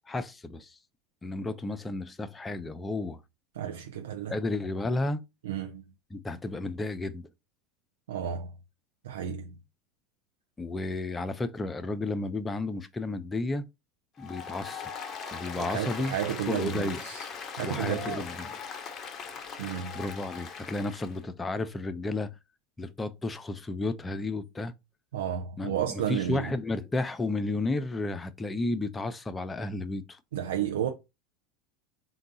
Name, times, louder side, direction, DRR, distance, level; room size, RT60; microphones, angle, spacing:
voice 1, 0.1-0.7 1.2-3.2 4.3-5.2 6.1-7.3 10.6-13.7 14.2-14.9 15.3-16.1 16.5-17.0 17.6-18.5 19.9-22.3 22.8-24.7 25.6-30.2, left 2 dB, 15° left, 0.5 m, -32 dB
voice 2, 3.5-4.4 5.4-5.9 8.1-8.5 9.0-9.5 15.6-17.3 17.6-18.3 19.6-20.0 25.1-26.5 30.3-30.9, right 9 dB, 85° right, 0.5 m, -32 dB
Applause, 14.2-21.2, left 6 dB, 40° left, 0.8 m, -40 dB
3.8 x 2.3 x 3.8 m
hypercardioid pair, 100°, 0 cm